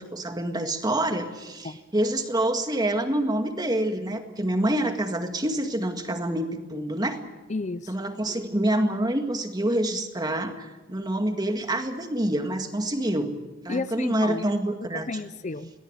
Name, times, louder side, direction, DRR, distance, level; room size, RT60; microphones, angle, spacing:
voice 1, 0.0-7.2 7.9-13.4 13.6-15.1, right 1 dB, 20° right, 6 dB, 1.9 m, -27 dB
voice 2, 7.5-7.9 13.7-14.4 14.9-15.7, left 3 dB, 35° left, 13 dB, 0.6 m, -32 dB
23.0 x 18.0 x 8.1 m, 1.2 s
head